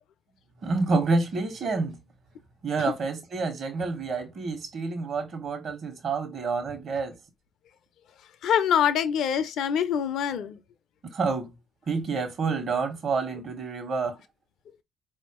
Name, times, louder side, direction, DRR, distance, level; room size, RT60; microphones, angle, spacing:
voice 1, 0.6-2.0 2.6-7.1 11.1-11.5 11.9-14.2, right 4 dB, 60° right, 1.3 m, -28 dB
voice 2, 8.4-10.6, left 8 dB, 70° left, 0.6 m, -25 dB
4.5 x 2.8 x 3.0 m
hypercardioid pair, 55°, 0 cm